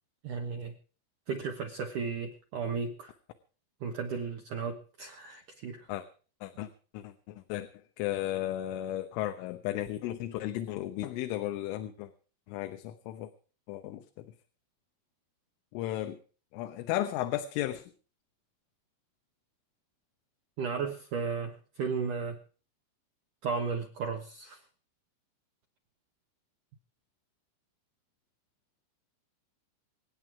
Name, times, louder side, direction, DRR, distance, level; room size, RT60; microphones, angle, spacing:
voice 1, 0.2-0.7 1.3-3.1 3.8-5.9 20.6-22.4 23.4-24.6, right 5 dB, 65° right, 3 dB, 2.0 m, -34 dB
voice 2, 6.9-7.7 8.0-12.1 12.5-13.3 13.7-14.0 15.7-16.2 16.5-17.8, left 13 dB, 85° left, 7 dB, 3.5 m, -34 dB
26.0 x 9.2 x 4.7 m, 0.39 s
omnidirectional pair, 5.6 m